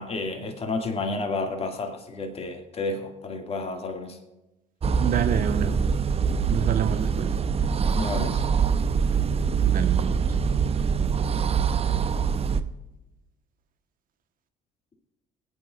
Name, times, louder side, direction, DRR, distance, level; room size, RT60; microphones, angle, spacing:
voice 1, 0.0-4.2 7.9-8.4, left 3 dB, 35° left, 3 dB, 2.3 m, -31 dB
sound 1, 4.8-12.6, right 6 dB, 35° right, 0.8 m, -24 dB
voice 2, 5.0-5.8 6.5-7.3 9.6-10.3, right 8 dB, 50° right, 8 dB, 1.4 m, -28 dB
23.5 x 9.2 x 2.5 m, 1.0 s
figure-of-eight pair, 55°, 18 cm